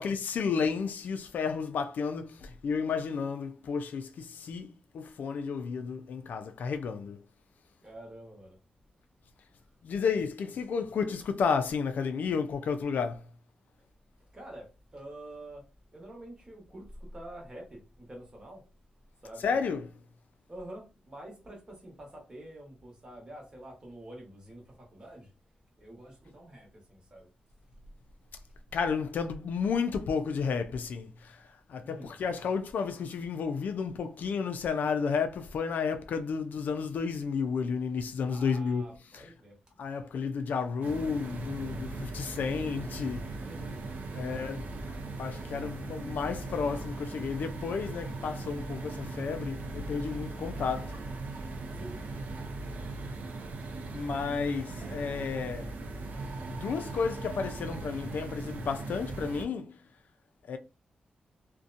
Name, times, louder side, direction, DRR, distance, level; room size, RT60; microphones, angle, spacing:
voice 1, 0.0-7.2 9.8-13.2 19.4-19.8 28.7-31.4 31.7-38.8 39.1-39.2 39.8-43.3 44.1-51.0 53.9-55.7 56.5-59.7 60.5-60.6, left 5 dB, 75° left, 0.3 m, -32 dB
voice 2, 7.8-8.6 14.3-15.6 15.9-18.6 19.2-19.5 20.5-25.3 25.8-27.3 31.8-32.1 38.3-39.6 43.4-43.9 44.1-44.5 51.8-52.0, right 1 dB, 30° right, 1.1 m, -47 dB
sound 1, 40.8-59.4, right 3 dB, 80° right, 0.5 m, -39 dB
2.7 x 2.1 x 2.5 m
wide cardioid pair, 140°, 3 cm